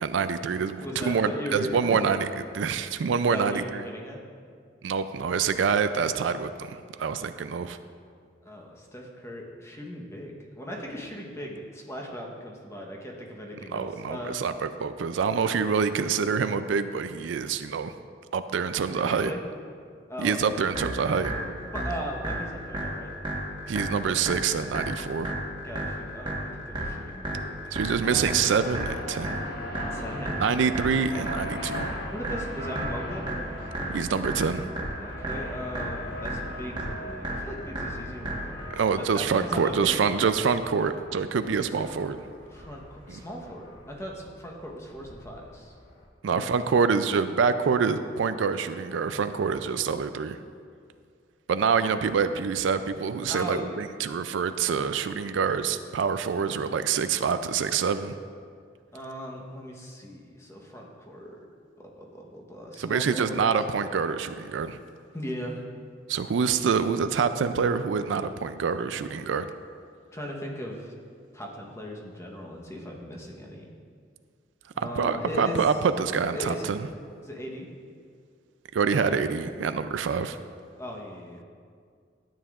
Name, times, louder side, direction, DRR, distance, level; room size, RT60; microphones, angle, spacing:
voice 1, 0.0-2.3 2.5-3.8 4.8-7.8 13.7-17.9 18.3-19.3 20.2-21.3 23.7-25.3 27.7-29.3 30.4-31.9 33.9-34.7 38.7-42.2 46.2-50.4 51.5-58.1 62.8-64.8 66.1-69.5 74.8-76.8 78.7-80.4, right 6 dB, 75° right, 11 dB, 0.4 m, -26 dB
voice 2, 0.8-1.8 3.3-4.2 8.4-14.4 19.2-19.4 20.1-20.6 21.7-23.1 25.6-27.6 29.9-30.6 32.1-33.4 35.0-38.7 39.0-40.4 42.5-45.7 46.3-46.5 53.3-53.8 58.9-61.4 61.8-63.5 65.1-65.6 70.1-70.9 71.3-73.7 74.7-75.6 76.3-76.7 77.2-77.7 80.8-81.4, equal, 15° left, -1 dB, 1.0 m, -38 dB
sound 1, 20.7-38.7, right 1 dB, 25° right, 1.3 m, -34 dB
sound 2, 28.0-46.1, left 1 dB, 60° left, 1.3 m, -41 dB
12.5 x 9.0 x 2.5 m, 2.1 s
head